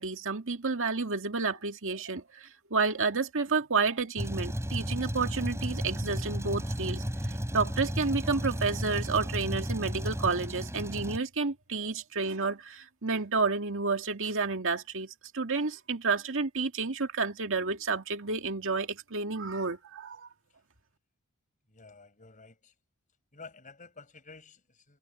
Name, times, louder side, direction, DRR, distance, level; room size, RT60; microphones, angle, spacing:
voice 1, 0.0-20.3, right 4 dB, 60° right, 2.1 m, -30 dB
Truck, 4.2-11.2, equal, 15° right, 3.9 m, -33 dB
voice 2, 21.7-22.7 23.3-25.0, left 4 dB, 35° left, 5.5 m, -51 dB
head